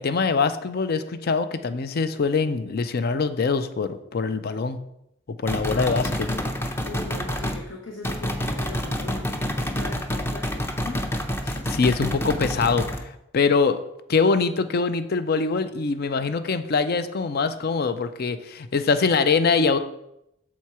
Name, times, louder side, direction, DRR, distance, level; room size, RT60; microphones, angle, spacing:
voice 1, 0.0-4.8 5.4-6.1 11.5-13.8 14.1-19.8, left 4 dB, 55° left, 11 dB, 0.5 m, -23 dB
sound 1, 5.5-7.6 8.0-13.0, equal, 15° left, 0.6 m, -28 dB
voice 2, 5.7-6.6 6.8-11.1, left 3 dB, 70° left, -1 dB, 1.0 m, -39 dB
7.3 x 4.4 x 4.7 m, 0.81 s
head